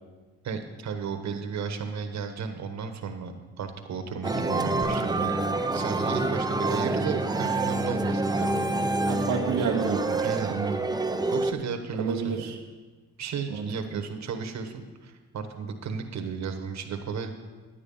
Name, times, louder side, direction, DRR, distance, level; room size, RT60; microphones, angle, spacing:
voice 1, 0.4-5.3 5.7-8.5 10.2-10.5 11.3-12.4 13.2-17.3, right 5 dB, 65° right, 6 dB, 1.3 m, -34 dB
sound 1, 4.2-11.5, right 2 dB, 15° right, 0.7 m, -27 dB
voice 2, 9.0-10.8 12.0-12.5 13.5-14.0, right 6 dB, 90° right, 0 dB, 1.1 m, -30 dB
10.0 x 9.6 x 5.5 m, 1.3 s
cardioid pair, 90°, 30 cm